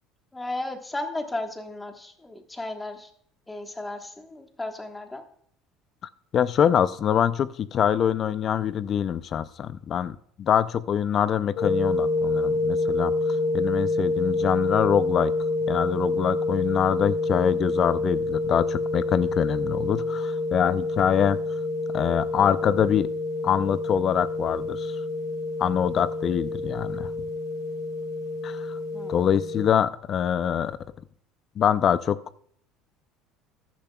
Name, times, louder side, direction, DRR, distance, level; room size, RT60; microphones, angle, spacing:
voice 1, 0.3-3.1 3.5-5.2 28.9-29.2, left 2 dB, 10° left, 5 dB, 1.3 m, -34 dB
voice 2, 6.3-13.1 13.5-15.3 15.7-21.4 21.9-23.1 23.4-24.9 25.6-27.1 28.4-28.8 29.1-30.8 31.6-32.2, left 9 dB, 40° left, 16 dB, 0.5 m, -24 dB
sound 1, 11.6-29.6, left 2 dB, 65° left, 1.9 m, -27 dB
14.0 x 10.5 x 2.3 m, 0.63 s
cardioid pair, 130°, 0 cm